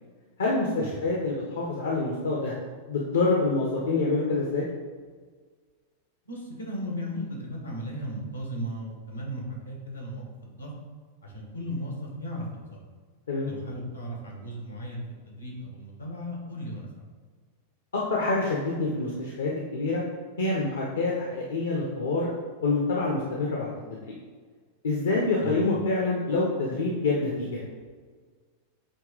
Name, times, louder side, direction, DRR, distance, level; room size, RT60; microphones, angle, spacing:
voice 1, 0.4-2.5 2.9-4.6 13.3-13.5 17.9-20.0 20.4-22.3 22.6-23.7 24.1-24.2 24.8-27.6, left 3 dB, 65° left, -3 dB, 0.9 m, -26 dB
voice 2, 6.3-10.7 11.2-12.4 12.7-12.8 13.5-16.9 25.4-25.6, equal, 85° left, -1 dB, 1.5 m, -36 dB
8.5 x 3.0 x 3.9 m, 1.5 s
figure-of-eight pair, 90°, 0 cm